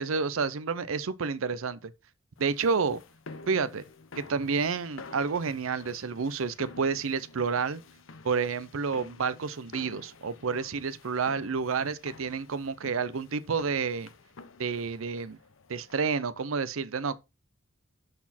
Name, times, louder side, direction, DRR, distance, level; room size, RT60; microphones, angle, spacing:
voice 1, 0.0-1.9 2.4-3.0 3.5-3.8 4.2-7.8 8.2-14.1 14.6-15.4 15.7-17.2, right 5 dB, 80° right, 0.6 m, -30 dB
sound 1, 2.4-16.3, left 3 dB, 70° left, 0.8 m, -50 dB
12.0 x 4.2 x 4.2 m
head